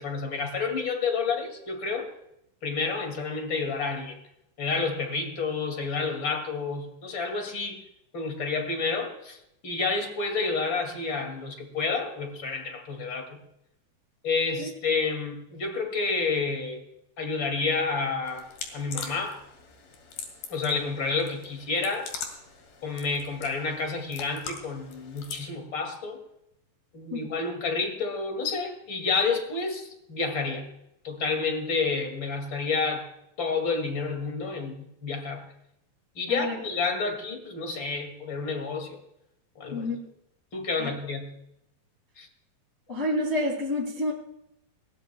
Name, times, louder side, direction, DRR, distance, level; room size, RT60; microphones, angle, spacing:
voice 1, 0.0-2.1 2.6-4.2 4.6-7.8 8.1-9.4 9.6-13.4 14.2-16.8 17.2-18.5 18.7-19.4 20.5-22.1 22.8-26.2 26.9-30.7 31.0-33.1 33.4-35.4 36.2-39.0 39.6-39.9 40.5-41.3 42.2-42.3, left 4 dB, 35° left, 5 dB, 2.6 m, -29 dB
sound 1, 18.2-25.5, left 6 dB, 75° left, 4.2 m, -42 dB
voice 2, 39.7-40.0 40.8-40.9 42.9-44.1, left 1 dB, 20° left, -2 dB, 2.2 m, -28 dB
21.0 x 18.0 x 2.3 m, 0.82 s
omnidirectional pair, 4.3 m